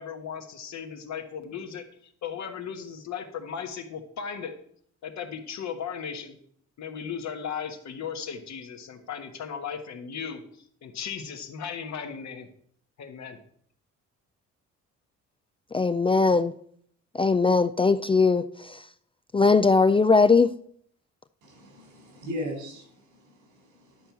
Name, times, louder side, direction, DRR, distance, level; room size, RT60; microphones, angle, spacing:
voice 1, 0.0-4.5 5.0-6.4 6.8-12.5 13.0-13.4, left 7 dB, 65° left, 1.5 m, -36 dB
voice 2, 15.7-16.5 17.1-18.8 19.3-20.5, left 4 dB, 20° left, 0.3 m, -20 dB
voice 3, 21.4-24.1, equal, 85° right, 4.3 m, -38 dB
11.0 x 4.6 x 7.0 m
cardioid pair, 90°, 30 cm